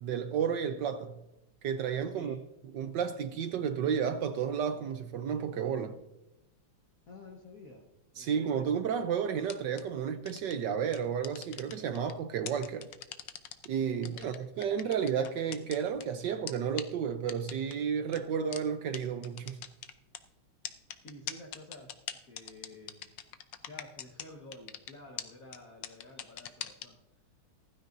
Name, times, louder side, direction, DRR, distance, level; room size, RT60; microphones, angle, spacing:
voice 1, 0.0-1.2 1.6-2.4 2.7-6.0 8.2-12.9 13.7-19.6, right 7 dB, 70° right, 1.2 m, -32 dB
voice 2, 2.1-2.4 7.1-7.9 8.1-8.6 14.1-14.3 21.0-23.1 23.6-27.0, left 2 dB, 45° left, 1.7 m, -51 dB
sound 1, 9.4-9.8 10.3-10.5 10.9-12.1 12.5-13.7 14.0-16.0 16.5-16.6 16.8-16.9 17.3-17.7 18.1-18.2 18.5-18.6 18.9-19.0 19.2-20.2 20.6-24.3 24.5-24.9 25.2-25.3 25.5-25.6 25.8-26.9, left 11 dB, 70° left, 1.3 m, -40 dB
15.5 x 14.5 x 2.6 m
omnidirectional pair, 2.3 m